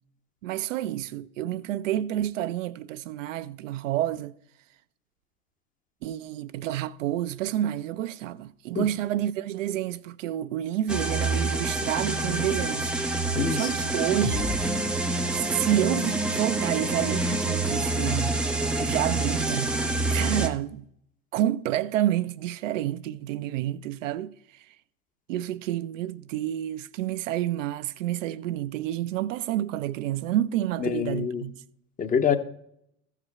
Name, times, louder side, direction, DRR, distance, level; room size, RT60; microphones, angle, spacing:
voice 1, 0.4-4.3 6.0-12.9 13.5-14.6 15.3-18.4 18.8-19.8 20.1-20.9 21.3-24.6 25.3-31.6, right 12 dB, 60° right, 0.6 m, -29 dB
sound 1, 10.9-20.5, right 2 dB, 5° right, 0.4 m, -27 dB
voice 2, 13.4-13.7 30.8-31.4 32.0-32.4, left 7 dB, 20° left, 0.7 m, -25 dB
15.0 x 5.0 x 4.4 m
figure-of-eight pair, 80°, 44 cm